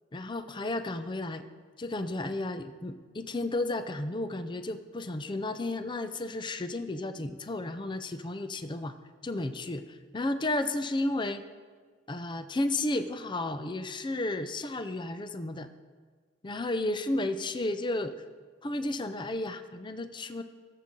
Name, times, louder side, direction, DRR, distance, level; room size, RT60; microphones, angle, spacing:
voice 1, 0.1-1.4 1.8-8.9 9.2-11.4 12.1-15.7 16.4-18.1 18.6-20.4, left 2 dB, 25° left, 9 dB, 0.5 m, -33 dB
20.5 x 7.4 x 3.8 m, 1.5 s
head